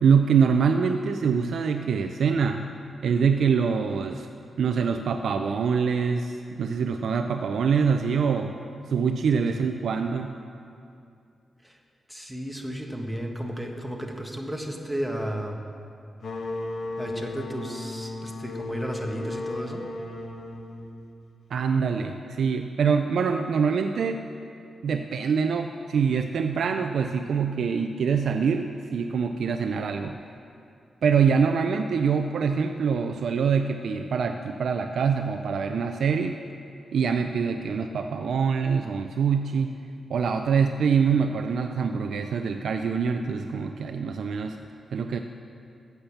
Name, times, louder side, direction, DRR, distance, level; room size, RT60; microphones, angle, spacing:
voice 1, 0.0-2.7 3.0-4.3 4.6-8.6 8.9-10.3 21.5-24.2 24.8-30.2 31.0-36.4 36.9-39.7 40.1-44.6 44.9-45.2, right 6 dB, 75° right, 6 dB, 0.4 m, -24 dB
voice 2, 9.3-9.6 11.6-11.8 12.1-15.6 17.0-19.8, equal, ahead, 2 dB, 1.2 m, -33 dB
sound 1, 16.2-21.6, left 2 dB, 75° left, 1.3 m, -36 dB
8.7 x 7.3 x 7.0 m, 2.5 s
cardioid pair, 85°, 0 cm